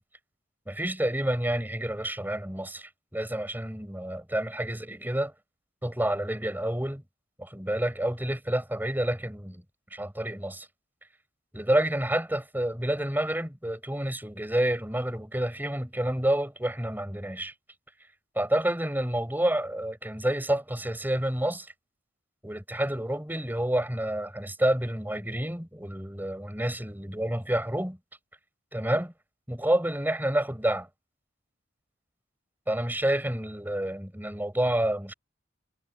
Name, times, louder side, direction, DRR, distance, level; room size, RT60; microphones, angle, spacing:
voice 1, 0.7-5.3 5.8-7.0 7.4-9.6 9.9-10.7 11.5-17.5 18.3-21.7 22.4-28.0 28.7-29.1 29.5-30.9 32.7-35.1, right 1 dB, 10° right, 6.4 m, -29 dB
head